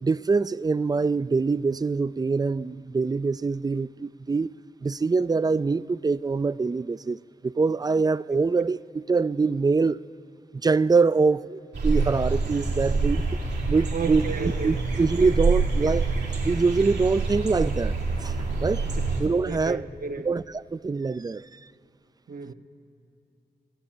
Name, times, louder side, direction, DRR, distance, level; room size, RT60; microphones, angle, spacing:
voice 1, 0.0-4.5 4.8-7.2 7.4-10.0 10.6-13.2 13.7-16.1 16.4-17.9 18.2-18.3 18.6-18.9 19.2-19.9 20.2-20.4 20.7-21.6, right 4 dB, 25° right, 0.4 m, -24 dB
sound 1, 11.7-19.2, right 3 dB, 90° right, 3.0 m, -26 dB
voice 2, 13.9-14.7 18.9-19.0 19.4-20.3 22.3-22.5, right 4 dB, 55° right, 1.0 m, -33 dB
16.0 x 8.6 x 9.2 m
cardioid pair, 50°, 17 cm